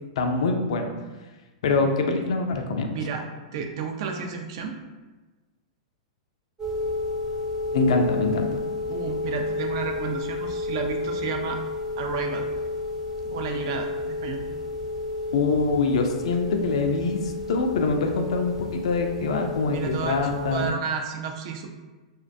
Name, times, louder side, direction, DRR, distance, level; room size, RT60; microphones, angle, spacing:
voice 1, 0.2-0.9 1.6-2.9 7.7-8.6 15.3-20.7, left 3 dB, 65° left, 4 dB, 0.3 m, -24 dB
voice 2, 2.9-4.8 8.9-11.6 12.0-12.5 13.3-14.5 19.7-20.2 20.5-21.7, right 6 dB, 55° right, 4 dB, 0.3 m, -32 dB
sound 1, 6.6-20.7, left 2 dB, 15° right, 0.6 m, -31 dB
2.4 x 2.1 x 2.5 m, 1.2 s
hypercardioid pair, 105°, 3 cm